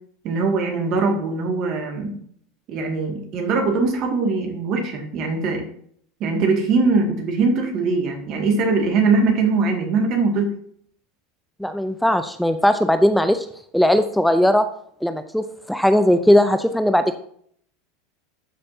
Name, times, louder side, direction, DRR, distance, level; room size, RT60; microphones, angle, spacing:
voice 1, 0.2-2.2 2.7-5.6 6.2-10.5, right 4 dB, 50° right, 3 dB, 2.2 m, -21 dB
voice 2, 11.6-13.5 13.7-14.7 15.0-17.2, left 1 dB, ahead, 9 dB, 0.6 m, -18 dB
12.5 x 5.3 x 2.8 m, 0.63 s
hypercardioid pair, 90°, 0 cm